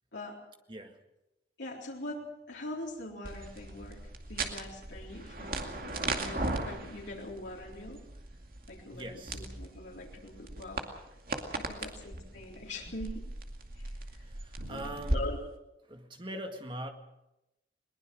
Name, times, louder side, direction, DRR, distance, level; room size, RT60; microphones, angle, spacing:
voice 1, 0.7-1.0 8.9-9.5 11.6-11.9 14.2-15.3 15.8-16.9, right 1 dB, 25° right, 5 dB, 1.9 m, -42 dB
voice 2, 1.6-8.0 8.7-10.9 11.5-13.2 13.8-14.2 14.6-14.8 15.1-15.4, left 1 dB, 90° left, -3 dB, 3.9 m, -43 dB
sound 1, 3.2-15.2, right 2 dB, 55° right, 2.3 m, -38 dB
21.5 x 20.0 x 6.3 m, 0.92 s
head